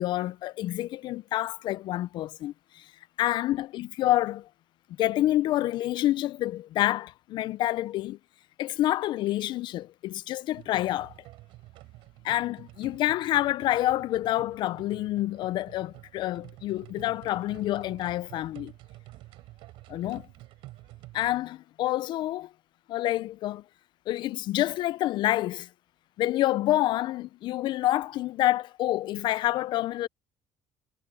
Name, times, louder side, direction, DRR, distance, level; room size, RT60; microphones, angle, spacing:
voice 1, 0.0-2.9 3.2-4.5 5.0-8.2 8.6-11.1 12.2-18.7 19.9-20.2 21.1-22.5 22.9-23.6 24.1-25.7 26.2-30.1, left 15 dB, 60° left, 0.4 m, -28 dB
sound 1, 10.5-21.4, right 18 dB, 75° right, 6.2 m, -49 dB
cardioid pair, 120°, 9 cm